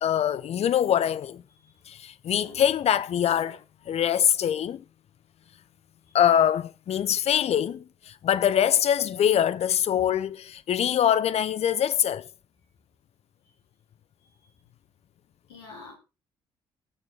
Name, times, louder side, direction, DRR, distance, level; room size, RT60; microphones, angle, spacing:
voice 1, 0.0-1.4 1.9-3.6 3.9-4.8 6.1-12.2, left 10 dB, 50° left, 0.8 m, -24 dB
voice 2, 15.5-15.9, left 4 dB, 85° left, 5.2 m, -45 dB
17.5 x 6.8 x 4.8 m
hypercardioid pair, 45°, 13 cm